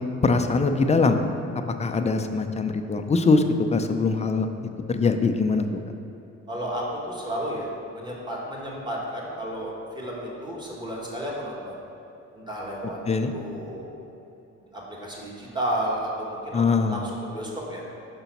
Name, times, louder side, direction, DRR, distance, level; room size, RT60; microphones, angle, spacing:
voice 1, 0.2-1.2 1.8-3.4 3.7-4.5 4.9-5.7 13.1-13.3 16.5-17.0, left 4 dB, 20° left, 6 dB, 0.4 m, -22 dB
voice 2, 6.5-11.8 12.3-13.0 13.3-13.9 14.7-17.8, right 1 dB, 15° right, -4 dB, 1.6 m, -32 dB
6.0 x 3.9 x 5.8 m, 2.8 s
cardioid pair, 90°, 30 cm